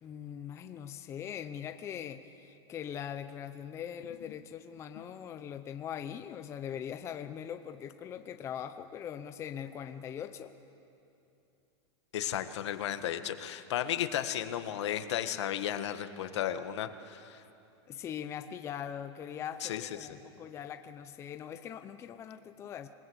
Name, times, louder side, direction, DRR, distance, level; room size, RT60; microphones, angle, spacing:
voice 1, 0.0-10.5 17.9-22.9, left 9 dB, 20° left, 8 dB, 0.7 m, -41 dB
voice 2, 12.1-17.4 19.6-19.9, left 11 dB, 70° left, 9 dB, 1.6 m, -34 dB
27.0 x 19.5 x 8.1 m, 2.8 s
supercardioid pair, 155°, 15 cm